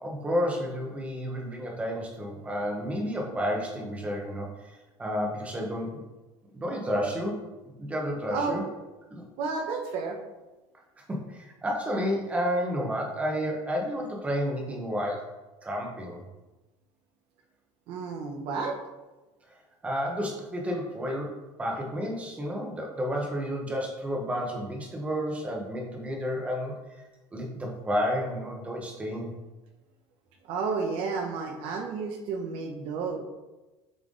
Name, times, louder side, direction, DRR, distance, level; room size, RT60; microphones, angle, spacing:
voice 1, 0.0-6.0 6.5-8.6 9.1-9.2 11.1-15.3 15.6-16.2 19.8-27.1 27.3-29.3, equal, 15° right, 0 dB, 1.0 m, -31 dB
voice 2, 8.3-8.7 9.4-10.2 17.9-18.8 30.5-33.2, right 4 dB, 65° right, 4 dB, 0.9 m, -31 dB
7.4 x 3.4 x 3.8 m, 1.1 s
cardioid pair, 165°, 10 cm